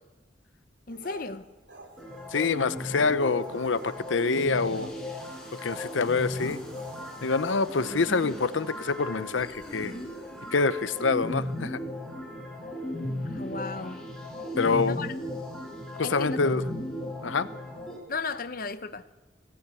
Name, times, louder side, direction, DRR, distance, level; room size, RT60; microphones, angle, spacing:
voice 1, 0.9-1.5 13.3-14.0 14.8-15.1 16.0-16.4 18.1-19.0, left 4 dB, 50° left, 0.8 m, -35 dB
sound 1, 0.9-7.6, right 2 dB, 75° right, 3.4 m, -49 dB
sound 2, 2.0-18.0, left 1 dB, 5° left, 4.8 m, -36 dB
voice 2, 2.3-4.9 5.6-6.6 7.2-9.9 10.5-11.8 14.6-15.0 16.0-16.6 17.2-17.5, left 4 dB, 90° left, 0.8 m, -26 dB
21.5 x 15.5 x 9.7 m
head